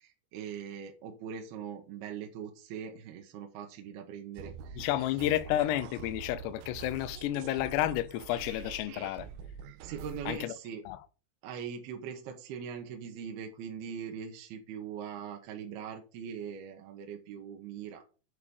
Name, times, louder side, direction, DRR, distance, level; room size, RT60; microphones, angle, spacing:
voice 1, 0.0-4.9 9.8-10.9 11.4-18.0, right 7 dB, 70° right, 2.7 m, -41 dB
Muku Hulu Tala, 4.4-10.4, right 7 dB, 90° right, 3.1 m, -45 dB
voice 2, 4.8-9.3 10.3-10.5 10.9-11.0, left 13 dB, 80° left, 2.5 m, -31 dB
9.7 x 4.8 x 6.9 m
omnidirectional pair, 5.5 m